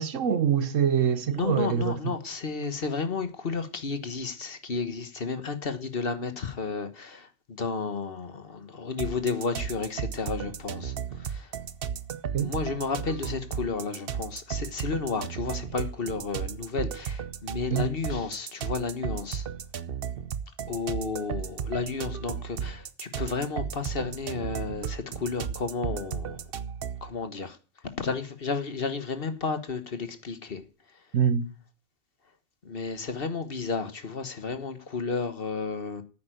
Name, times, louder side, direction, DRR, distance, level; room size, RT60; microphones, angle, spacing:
voice 1, 0.0-2.2 12.3-12.5 17.7-17.9 31.1-31.5, right 8 dB, 90° right, 1.4 m, -25 dB
voice 2, 1.3-10.9 11.2-11.5 12.4-19.5 20.7-26.4 27.0-27.6 28.0-30.6 32.6-36.0, left 4 dB, 50° left, 1.5 m, -32 dB
sound 1, 9.0-27.1, right 8 dB, 55° right, 0.9 m, -35 dB
9.4 x 8.8 x 9.1 m
omnidirectional pair, 1.3 m